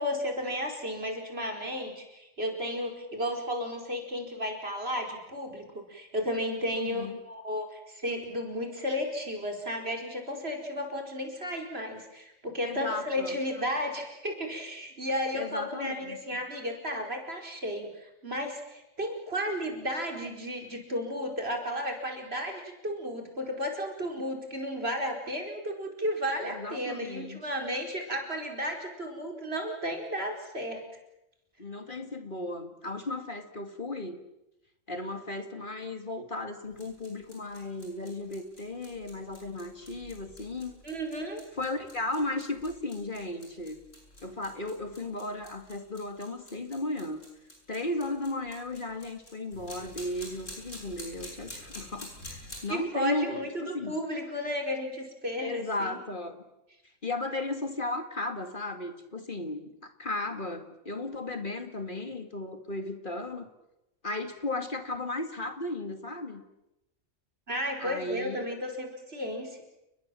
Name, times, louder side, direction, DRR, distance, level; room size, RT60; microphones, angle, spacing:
voice 1, 0.0-30.8 40.8-41.4 52.7-56.0 67.5-69.6, equal, 55° right, 3 dB, 5.1 m, -33 dB
voice 2, 6.7-7.2 12.6-13.4 15.3-16.4 26.4-27.4 31.6-34.2 34.9-40.8 41.6-43.8 44.2-47.2 47.7-54.0 55.4-56.4 57.0-63.5 64.0-66.4 67.8-68.5, left 2 dB, 40° left, 7 dB, 2.3 m, -35 dB
sound 1, 36.6-52.7, left 1 dB, 90° left, 8.4 m, -49 dB
30.0 x 21.0 x 7.6 m, 0.91 s
omnidirectional pair, 1.3 m